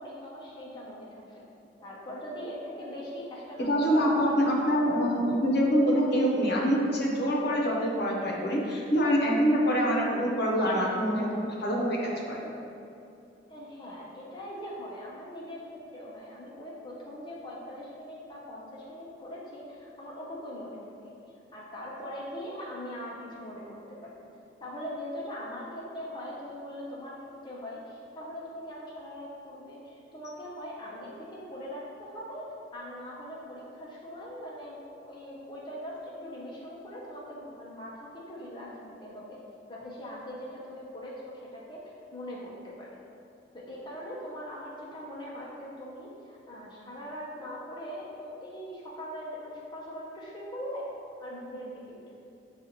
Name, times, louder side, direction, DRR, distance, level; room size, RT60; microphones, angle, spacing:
voice 1, 0.0-1.4 1.8-4.4 13.5-15.6 15.9-20.8 21.5-24.3 24.6-27.1 27.4-32.5 32.7-39.4 39.7-41.8 42.1-43.0 43.7-50.9 51.2-52.0, equal, 25° left, -6 dB, 0.5 m, -41 dB
voice 2, 3.7-12.5, equal, 60° left, -3 dB, 0.8 m, -25 dB
7.1 x 2.4 x 2.8 m, 2.7 s
head